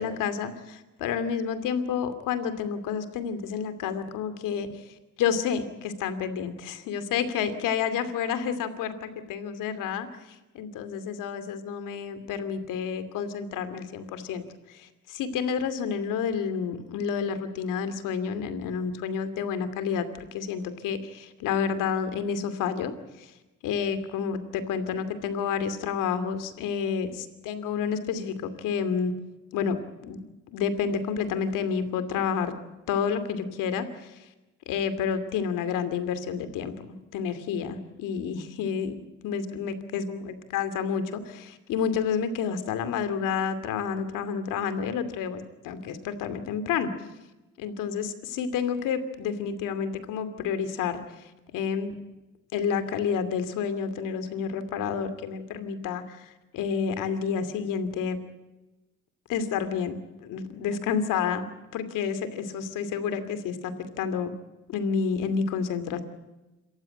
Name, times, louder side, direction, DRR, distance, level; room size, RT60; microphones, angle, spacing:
voice 1, 0.0-4.8 5.2-14.4 14.7-22.9 23.2-23.3 23.6-29.1 29.5-29.8 30.0-30.2 30.5-32.5 32.9-34.3 34.7-46.9 47.6-51.9 52.5-58.2 59.3-61.5 61.7-63.7 64.0-64.3 64.7-66.0, left 6 dB, 90° left, 11 dB, 2.6 m, -30 dB
27.5 x 15.0 x 9.0 m, 1.0 s
cardioid pair, 90°, 31 cm